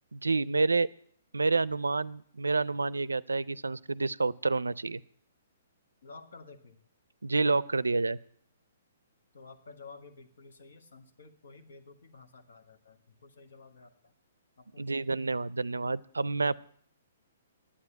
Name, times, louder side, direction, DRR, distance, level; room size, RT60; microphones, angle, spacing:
voice 1, 0.1-0.9 1.3-5.0 7.2-8.2 14.8-16.6, right 3 dB, 90° right, 21 dB, 0.4 m, -28 dB
voice 2, 6.0-6.8 9.3-14.1 14.6-15.1, left 4 dB, 70° left, 7 dB, 1.5 m, -52 dB
9.7 x 8.7 x 9.0 m, 0.63 s
hypercardioid pair, 125°, 0 cm